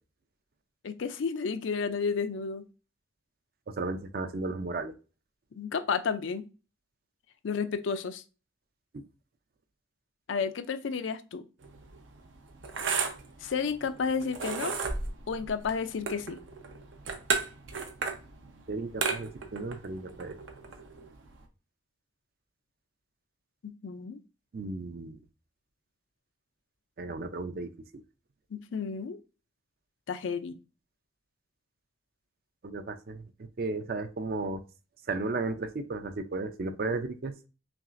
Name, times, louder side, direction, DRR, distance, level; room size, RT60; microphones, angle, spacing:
voice 1, 0.8-2.6 5.5-6.5 7.4-8.2 10.3-11.4 13.4-14.8 15.3-16.4 23.6-24.2 28.5-29.2 30.1-30.6, left 5 dB, 75° left, 11 dB, 0.4 m, -32 dB
voice 2, 3.7-4.9 8.9-9.0 18.7-20.4 24.5-25.2 27.0-27.7 32.6-34.6 35.1-37.3, right 3 dB, 50° right, 10 dB, 0.4 m, -34 dB
sound 1, 11.6-21.4, right 5 dB, 85° right, 0.7 m, -35 dB
5.8 x 2.4 x 2.5 m, 0.32 s
head